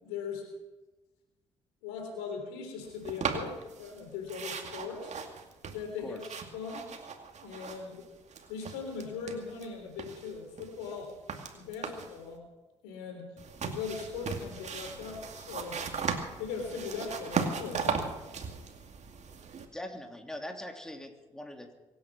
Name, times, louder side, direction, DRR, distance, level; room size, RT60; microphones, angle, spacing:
voice 1, 0.0-0.5 1.8-5.1 5.7-6.2 6.5-6.9 7.4-8.1 8.5-11.1 11.5-12.5 12.8-13.3 13.6-15.8 16.4-18.1, left 5 dB, 80° left, 4 dB, 3.5 m, -39 dB
sound 1, 3.1-4.0 4.3-8.0 8.3-9.7 10.0-12.2 13.4-19.7, right 5 dB, 50° right, 2.4 m, -37 dB
voice 2, 19.7-21.7, left 1 dB, 5° left, 3 dB, 3.1 m, -42 dB
24.0 x 9.4 x 6.1 m, 1.1 s
hypercardioid pair, 45°, 15 cm